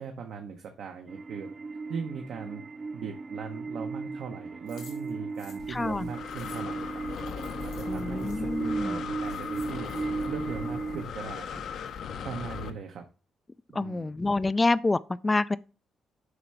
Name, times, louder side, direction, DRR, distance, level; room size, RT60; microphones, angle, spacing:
voice 1, 0.0-1.5 1.9-2.6 2.9-7.0 7.6-9.9 10.3-11.6 12.2-13.0 13.7-14.1, right 6 dB, 70° right, 1.0 m, -39 dB
sound 1, 1.1-11.0, right 4 dB, 35° right, 0.8 m, -36 dB
sound 2, 4.7-8.4 8.9-9.0 9.2-10.3, left 7 dB, 85° left, 2.8 m, -54 dB
Breathing, 5.6-12.7, left 7 dB, 65° left, 0.8 m, -38 dB
voice 2, 5.7-6.1 7.9-9.0 13.7-15.6, left 3 dB, 20° left, 0.3 m, -27 dB
8.0 x 3.2 x 5.6 m
cardioid pair, 90°, 0 cm